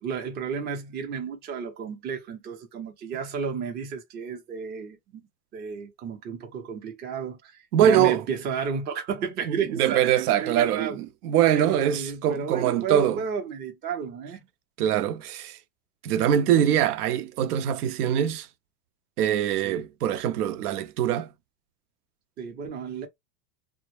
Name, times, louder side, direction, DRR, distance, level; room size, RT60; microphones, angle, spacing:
voice 1, 0.0-5.2 5.5-10.1 10.4-11.0 11.5-14.4 19.6-19.8 22.4-23.1, right 6 dB, 20° right, 0.6 m, -32 dB
voice 2, 7.7-8.2 9.5-13.2 14.8-15.6 16.0-18.5 19.2-21.3, right 10 dB, 70° right, 0.7 m, -23 dB
2.1 x 2.1 x 3.1 m
hypercardioid pair, 125°, 48 cm